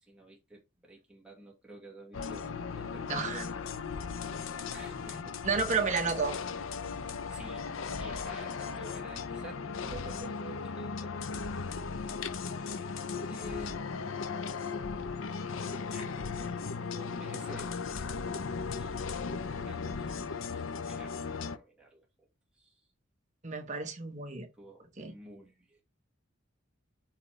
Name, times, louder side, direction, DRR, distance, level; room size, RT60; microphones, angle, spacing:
voice 1, 0.1-2.5 2.7-3.5 4.7-5.4 7.3-11.3 13.3-14.3 15.9-17.7 18.8-22.3 22.5-22.8 24.6-25.8, right 2 dB, 5° right, 1.9 m, -51 dB
sound 1, 2.1-21.6, left 5 dB, 85° left, 0.6 m, -37 dB
voice 2, 3.1-3.4 5.4-6.4 13.7-13.8 23.4-24.5 25.0-25.1, right 4 dB, 40° right, 1.3 m, -31 dB
8.1 x 4.2 x 3.4 m
head